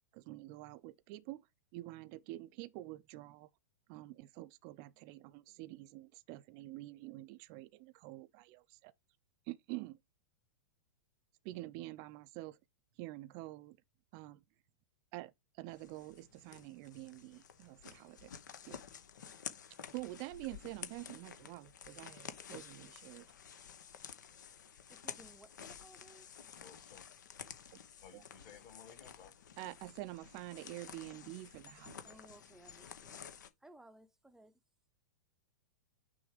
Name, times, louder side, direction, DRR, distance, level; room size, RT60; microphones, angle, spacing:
voice 1, 0.1-1.5 1.7-3.5 3.9-8.9 9.5-10.0 11.4-12.6 13.0-13.8 14.1-14.4 15.1-18.3 18.7-18.8 19.9-23.3 28.1-28.2 29.6-32.2, right 18 dB, 40° right, 0.5 m, -47 dB
sound 1, 15.7-33.5, left 8 dB, 70° left, 0.9 m, -51 dB
voice 2, 24.9-26.6 32.0-33.2 33.6-34.6, right 1 dB, 5° right, 0.7 m, -60 dB
voice 3, 26.6-27.1 28.0-29.3, left 7 dB, 45° left, 2.1 m, -57 dB
6.2 x 3.4 x 4.8 m
figure-of-eight pair, 100°, 10 cm